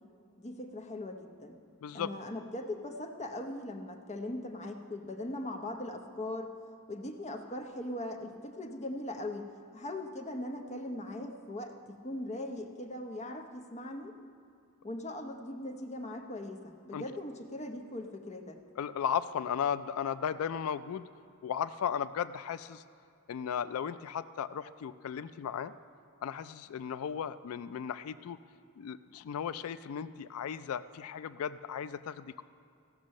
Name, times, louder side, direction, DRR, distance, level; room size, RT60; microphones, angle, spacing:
voice 1, 0.4-1.6 1.9-6.5 6.9-14.2 14.8-18.6, left 1 dB, 30° left, 3 dB, 0.8 m, -40 dB
voice 2, 1.8-2.1 16.9-17.0 18.8-21.1 21.4-22.8 23.3-25.7 26.2-28.4 28.8-32.4, left 8 dB, 75° left, 14 dB, 0.3 m, -35 dB
16.0 x 6.0 x 6.4 m, 2.4 s
head